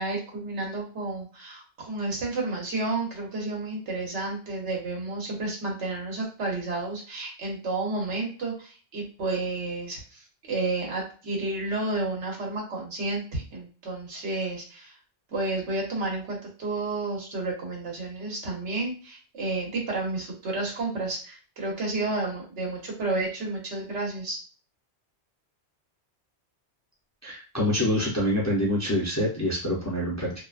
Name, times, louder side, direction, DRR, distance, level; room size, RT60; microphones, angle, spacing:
voice 1, 0.0-14.9 15.3-24.4, right 2 dB, 85° right, -1 dB, 1.3 m, -31 dB
voice 2, 27.2-30.3, left 1 dB, 20° left, -4 dB, 0.5 m, -26 dB
2.7 x 2.3 x 2.4 m, 0.38 s
omnidirectional pair, 1.1 m